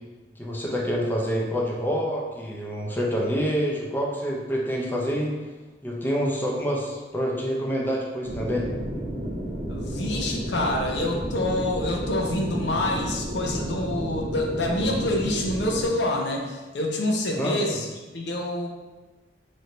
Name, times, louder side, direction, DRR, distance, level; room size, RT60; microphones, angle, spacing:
voice 1, 0.4-5.3 5.8-8.7 17.4-17.8, equal, 10° left, -3 dB, 0.5 m, -27 dB
sound 1, 8.2-15.9, right 1 dB, 70° right, 0.7 m, -32 dB
voice 2, 9.7-17.9 18.1-18.7, left 1 dB, 80° left, 1 dB, 0.6 m, -27 dB
3.2 x 2.6 x 4.2 m, 1.2 s
head